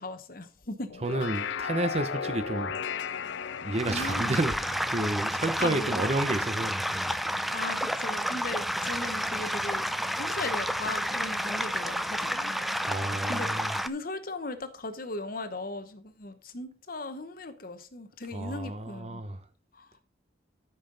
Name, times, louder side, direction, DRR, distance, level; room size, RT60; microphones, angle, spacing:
voice 1, 0.0-0.9 3.9-4.3 5.6-6.0 7.5-9.8 10.1-12.8 13.3-19.2 19.7-19.9, left 2 dB, 50° left, 1.0 m, -38 dB
sound 1, 0.9-6.4, left 6 dB, 75° left, 0.5 m, -36 dB
voice 2, 1.0-2.8 3.6-4.6 4.9-7.5 12.9-13.8 18.3-19.4, right 2 dB, 35° right, 0.7 m, -31 dB
sound 2, 3.7-13.9, equal, ahead, 0.3 m, -30 dB
13.0 x 5.6 x 3.9 m
head